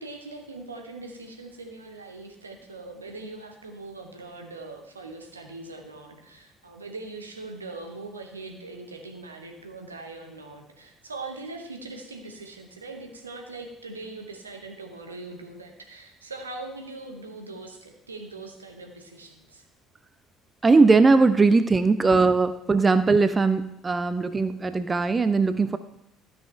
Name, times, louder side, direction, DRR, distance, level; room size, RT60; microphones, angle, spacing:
voice 1, 0.0-19.6, right 3 dB, 80° right, 3 dB, 1.0 m, -41 dB
voice 2, 20.6-25.8, right 3 dB, 25° right, 12 dB, 0.4 m, -20 dB
12.5 x 5.7 x 4.7 m, 0.82 s
figure-of-eight pair, 55°, 0 cm